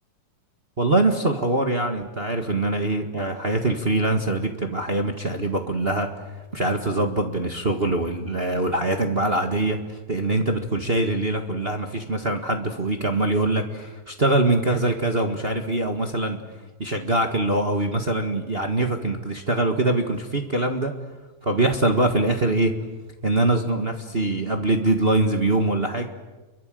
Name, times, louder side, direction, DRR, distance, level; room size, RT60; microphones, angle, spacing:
voice 1, 0.8-16.4 16.8-20.9 21.4-22.7 23.2-26.1, right 2 dB, 35° right, 4 dB, 0.9 m, -23 dB
29.5 x 23.5 x 7.7 m, 1.2 s
omnidirectional pair, 3.8 m